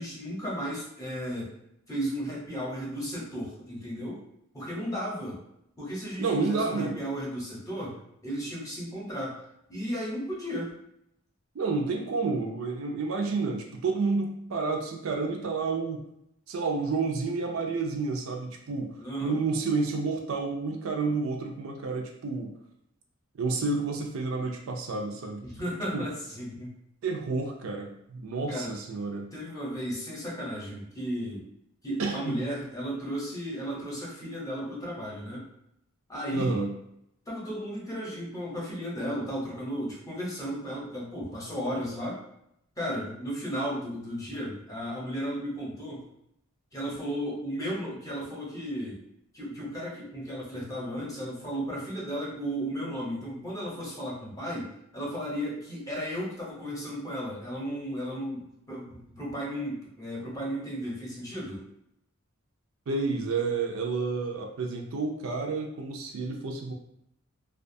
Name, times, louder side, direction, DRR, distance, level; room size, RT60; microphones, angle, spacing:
voice 1, 0.0-1.5 1.9-4.2 4.5-5.4 5.8-9.4 9.7-10.7 19.0-19.4 25.4-26.7 28.5-28.7 29.3-31.4 31.8-35.5 36.1-36.6 37.3-42.2 42.8-46.0 46.7-49.0 49.3-61.7, equal, 15° left, -5 dB, 0.7 m, -34 dB
voice 2, 6.2-7.1 11.5-16.0 16.5-22.5 23.4-25.4 25.9-26.1 27.0-29.3 32.0-32.4 36.3-36.7 62.9-66.7, right 4 dB, 75° right, 2 dB, 0.4 m, -30 dB
2.4 x 2.3 x 2.6 m, 0.78 s
head